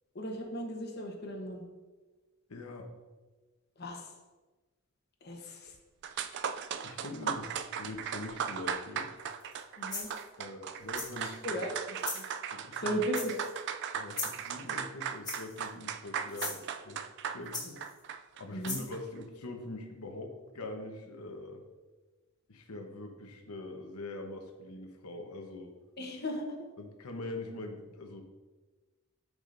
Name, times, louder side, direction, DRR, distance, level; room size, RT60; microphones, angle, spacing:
voice 1, 0.1-1.6 3.8-4.1 5.2-5.7 6.2-6.4 9.8-10.1 11.2-12.2 12.7-13.4 18.5-18.8 26.0-26.5, equal, 45° left, 1 dB, 1.1 m, -36 dB
voice 2, 2.5-2.9 6.8-9.1 10.4-11.6 12.5-13.0 13.9-17.0 17.3-17.8 18.4-21.6 22.5-25.7 26.8-28.2, left 2 dB, 80° left, 4 dB, 1.1 m, -43 dB
sound 1, 5.7-5.8 6.0-19.0, right 7 dB, 50° right, 0.3 m, -38 dB
sound 2, 9.4-9.6 9.9-10.3 10.9-11.3 12.0-12.3 13.1-13.6 14.1-14.5 15.2-15.7 16.3-16.6 17.5-18.0 18.6-18.9, left 3 dB, 15° left, 1.5 m, -38 dB
12.5 x 5.0 x 2.6 m, 1.2 s
head